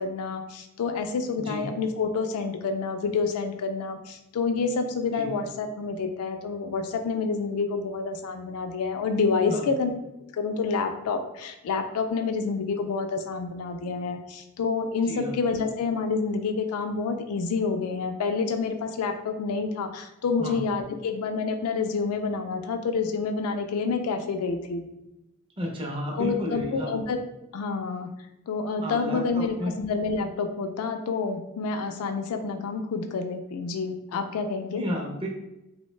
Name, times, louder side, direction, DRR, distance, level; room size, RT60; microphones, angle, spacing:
voice 1, 0.0-9.9 10.3-24.9 26.2-27.2 27.5-28.1 28.5-34.8, left 4 dB, 75° left, 6 dB, 0.3 m, -28 dB
voice 2, 25.6-27.0 28.8-29.7 34.8-35.3, equal, 25° right, -1 dB, 0.4 m, -32 dB
2.4 x 2.1 x 3.1 m, 0.89 s
head